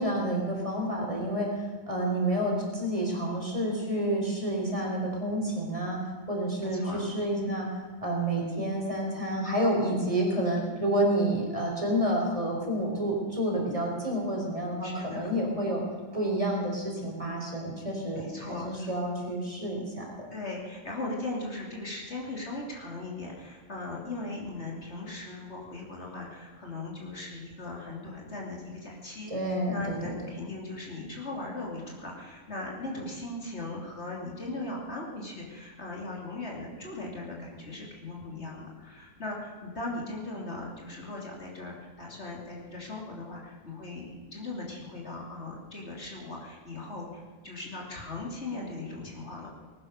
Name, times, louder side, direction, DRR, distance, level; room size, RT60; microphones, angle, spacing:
voice 1, 0.0-6.0 6.3-15.8 16.1-20.3 29.3-30.1, right 1 dB, 25° right, -1 dB, 3.5 m, -29 dB
voice 2, 6.6-7.1 14.8-15.3 18.1-18.9 20.3-29.3 29.7-49.5, left 2 dB, 55° left, -2 dB, 3.2 m, -38 dB
19.5 x 10.5 x 6.6 m, 1.5 s
omnidirectional pair, 1.4 m